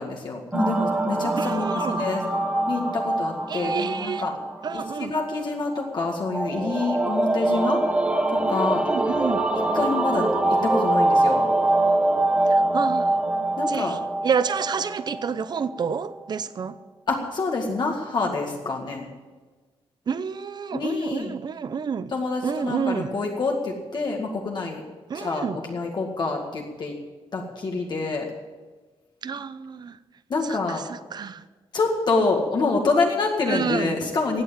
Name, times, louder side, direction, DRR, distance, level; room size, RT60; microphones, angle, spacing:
voice 1, 0.0-1.7 2.0-2.2 2.7-4.3 4.7-7.8 8.3-8.8 9.7-10.3 10.6-11.4 13.6-14.0 17.1-19.1 20.7-21.4 22.1-24.8 25.1-26.9 27.3-28.3 30.3-30.8 31.7-34.4, left 3 dB, 45° left, 0 dB, 2.0 m, -26 dB
sound 1, 0.5-15.8, right 2 dB, 10° right, 1.4 m, -24 dB
voice 2, 1.4-2.1 3.5-4.2 4.6-5.1 8.9-9.4 12.5-13.1 13.7-14.0 14.2-16.7 20.1-22.1 22.4-23.2 25.1-25.6 29.2-30.0 30.4-31.4 33.5-34.0, right 6 dB, 45° right, 14 dB, 0.8 m, -29 dB
16.0 x 9.3 x 7.6 m, 1.3 s
wide cardioid pair, 135°, 10 cm